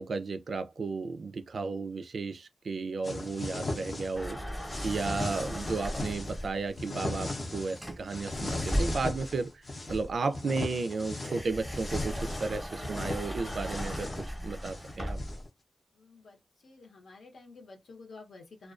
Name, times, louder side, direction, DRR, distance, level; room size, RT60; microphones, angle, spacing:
voice 1, 0.0-4.4 4.8-9.6 9.9-14.1 14.4-15.2, right 4 dB, 65° right, 0.3 m, -33 dB
sound 1, 3.0-4.3 4.6-6.4 6.8-7.8 8.1-10.0 10.3-15.5, left 2 dB, 45° left, 0.6 m, -37 dB
sound 2, 4.1-6.7 7.8-9.3 9.9-15.4, equal, 5° left, 0.7 m, -37 dB
voice 2, 15.9-16.4 16.6-18.7, left 3 dB, 75° left, 0.8 m, -51 dB
2.3 x 2.2 x 2.4 m
wide cardioid pair, 95°, 0 cm